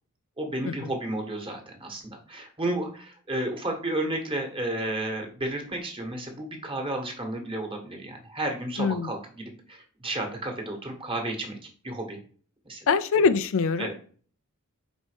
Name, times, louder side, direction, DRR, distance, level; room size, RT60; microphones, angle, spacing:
voice 1, 0.4-11.6 11.8-12.2 12.6-12.8 13.8-13.9, right 1 dB, 25° right, 3 dB, 1.5 m, -32 dB
voice 2, 8.8-9.1 12.9-13.9, left 5 dB, 60° left, 12 dB, 0.5 m, -23 dB
5.3 x 4.1 x 5.0 m, 0.43 s
head